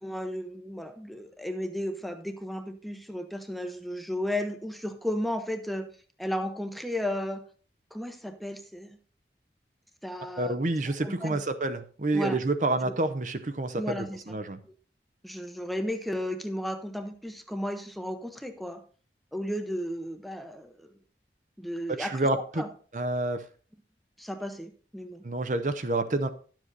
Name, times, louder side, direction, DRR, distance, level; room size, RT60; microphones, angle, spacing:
voice 1, 0.0-5.9 6.2-7.4 7.9-8.9 10.0-10.6 10.9-11.4 12.1-12.4 12.9-13.0 13.8-14.4 15.2-18.8 19.3-20.9 21.6-22.3 22.6-22.7 24.2-25.2, left 1 dB, ahead, 6 dB, 0.7 m, -34 dB
voice 2, 10.4-14.6 22.0-22.6 22.9-23.4 25.2-26.3, right 2 dB, 45° right, 9 dB, 0.7 m, -28 dB
11.5 x 7.6 x 4.0 m, 0.41 s
head